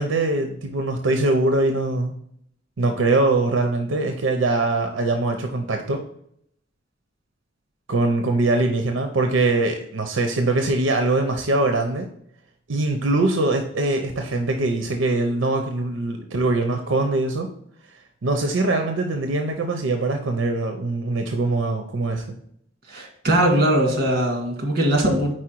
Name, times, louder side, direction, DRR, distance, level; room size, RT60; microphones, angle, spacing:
voice 1, 0.0-2.1 2.8-6.0 7.9-12.1 12.7-17.5 18.2-22.2, right 2 dB, 90° right, 4 dB, 0.6 m, -22 dB
voice 2, 22.9-25.3, right 1 dB, 50° right, 1 dB, 1.8 m, -20 dB
4.9 x 4.4 x 4.4 m, 0.70 s
head